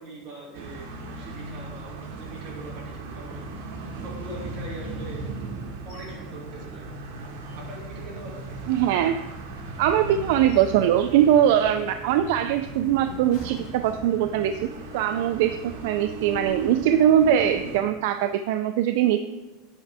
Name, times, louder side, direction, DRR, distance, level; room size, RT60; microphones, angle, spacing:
voice 1, 0.0-3.4 4.0-5.2 5.8-6.9 7.6-8.6, right 2 dB, 40° right, -4 dB, 2.6 m, -42 dB
sound 1, 0.5-17.8, right 2 dB, 85° right, 1.2 m, -37 dB
sound 2, 5.9-6.2 6.6-6.7 7.1-8.0 8.5-9.5 10.1-10.9 11.3-11.5 12.1-14.5 14.9-15.1, left 1 dB, 50° left, 2.5 m, -48 dB
voice 2, 8.7-9.2 9.8-19.2, right 10 dB, 65° right, 9 dB, 0.3 m, -21 dB
9.0 x 5.9 x 3.4 m, 1.1 s
supercardioid pair, 155°, 0 cm